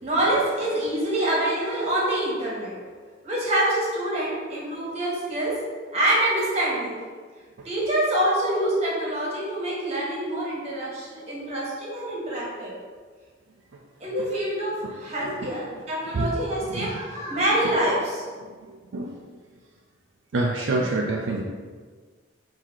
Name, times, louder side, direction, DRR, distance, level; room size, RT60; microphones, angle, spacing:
voice 1, 0.0-2.7 3.2-5.6 5.9-7.0 7.6-12.7 14.0-18.2, right 1 dB, 35° right, -5 dB, 1.3 m, -26 dB
voice 2, 16.7-17.0 18.4-19.2 20.3-21.4, right 2 dB, 70° right, -1 dB, 0.4 m, -27 dB
4.6 x 2.8 x 3.6 m, 1.5 s
head